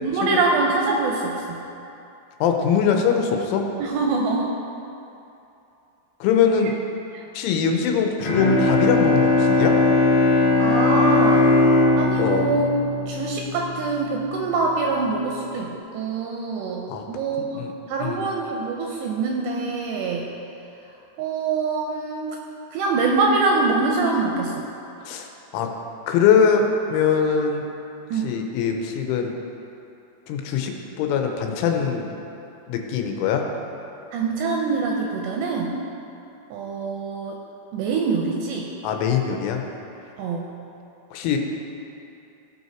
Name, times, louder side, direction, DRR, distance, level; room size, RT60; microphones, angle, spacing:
voice 1, 0.0-1.6 3.8-4.5 7.1-7.2 10.6-11.6 12.0-12.7 13.1-17.6 17.9-20.3 21.2-22.4 22.7-24.5 28.1-28.3 34.1-35.7 36.5-37.4 37.7-38.7 40.2-40.5, right 3 dB, 80° right, 0 dB, 2.6 m, -24 dB
voice 2, 2.4-3.6 6.2-6.7 7.3-9.8 12.2-12.5 16.9-17.0 17.5-17.7 18.0-18.3 25.0-25.7 26.1-27.6 28.2-29.4 30.3-30.7 31.0-32.1 32.7-33.4 38.8-39.6 41.1-41.4, left 7 dB, 90° left, 3 dB, 3.2 m, -22 dB
Bowed string instrument, 8.2-13.8, left 2 dB, 60° left, 2.1 m, -19 dB
15.5 x 5.6 x 4.5 m, 2.8 s
omnidirectional pair, 5.6 m